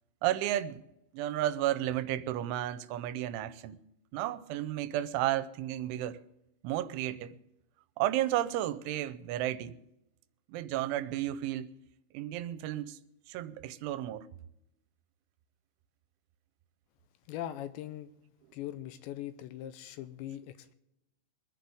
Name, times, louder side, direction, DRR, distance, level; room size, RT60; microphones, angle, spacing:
voice 1, 0.2-0.8 1.1-3.8 4.1-6.2 6.6-7.4 8.0-9.8 10.5-11.7 12.1-13.0 13.3-14.3, right 13 dB, 90° right, 3.1 m, -32 dB
voice 2, 17.3-18.1 18.5-20.7, left 12 dB, 80° left, 2.8 m, -41 dB
24.5 x 10.5 x 3.5 m
omnidirectional pair, 5.4 m